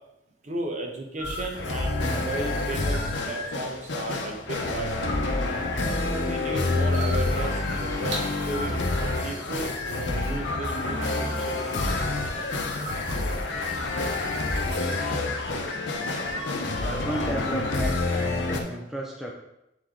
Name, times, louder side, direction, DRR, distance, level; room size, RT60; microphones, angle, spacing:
voice 1, 0.4-4.9 5.8-8.7 9.2-11.8, right 2 dB, 40° right, 2 dB, 1.0 m, -35 dB
sound 1, 1.2-18.6, left 2 dB, 75° left, 0.9 m, -28 dB
sound 2, 1.2-13.9, left 2 dB, 45° left, 1.5 m, -39 dB
sound 3, 6.3-16.6, right 2 dB, 80° right, 1.1 m, -43 dB
voice 2, 16.8-19.3, right 1 dB, ahead, -2 dB, 0.5 m, -33 dB
9.4 x 3.5 x 3.8 m, 0.87 s
head